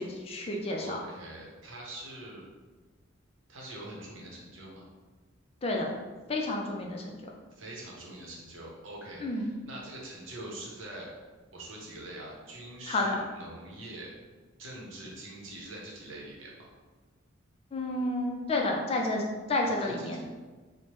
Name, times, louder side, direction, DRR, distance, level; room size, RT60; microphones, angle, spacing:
voice 1, 0.0-1.0 5.6-6.0 6.3-7.1 9.2-9.5 12.9-13.2 17.7-19.2 19.5-20.2, left 2 dB, 30° left, 0 dB, 0.3 m, -30 dB
voice 2, 0.8-2.4 3.5-4.9 7.6-11.1 11.5-14.1 14.6-16.7 19.8-20.2, right 1 dB, 70° right, -3 dB, 0.8 m, -44 dB
3.1 x 2.1 x 3.0 m, 1.3 s
head